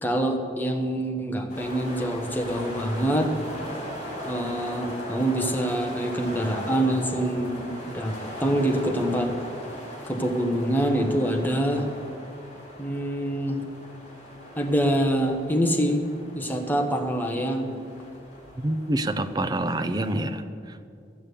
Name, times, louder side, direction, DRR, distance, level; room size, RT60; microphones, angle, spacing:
voice 1, 0.0-3.3 4.2-9.4 10.0-11.9 12.8-13.6 14.6-16.0 16.3-17.7, right 1 dB, 10° left, 3 dB, 1.1 m, -25 dB
sound 1, 1.5-20.3, equal, 40° left, 4.1 m, -39 dB
voice 2, 18.6-20.9, right 1 dB, 20° right, 8 dB, 0.5 m, -27 dB
13.0 x 7.3 x 8.3 m, 2.4 s
head